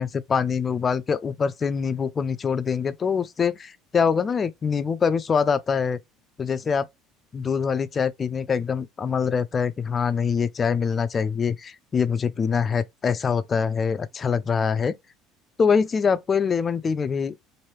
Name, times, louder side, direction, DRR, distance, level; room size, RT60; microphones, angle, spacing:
voice 1, 0.0-6.0 6.4-6.9 7.3-14.9 15.6-17.3, left 6 dB, 30° left, 0.3 m, -24 dB
3.1 x 2.6 x 3.0 m
supercardioid pair, 115°, 0 cm